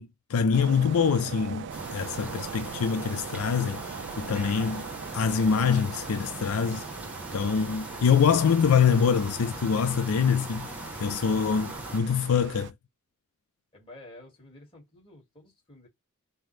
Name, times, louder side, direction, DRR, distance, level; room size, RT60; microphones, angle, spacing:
voice 1, 0.0-4.8 5.1-6.8 7.3-10.7 11.0-12.7, left 6 dB, 80° left, 0.4 m, -25 dB
sound 1, 0.5-12.7, right 7 dB, 55° right, 0.3 m, -41 dB
sound 2, 1.7-12.0, right 1 dB, 5° right, 0.8 m, -40 dB
voice 2, 13.7-15.9, left 1 dB, 25° left, 2.0 m, -50 dB
5.6 x 2.1 x 3.2 m
head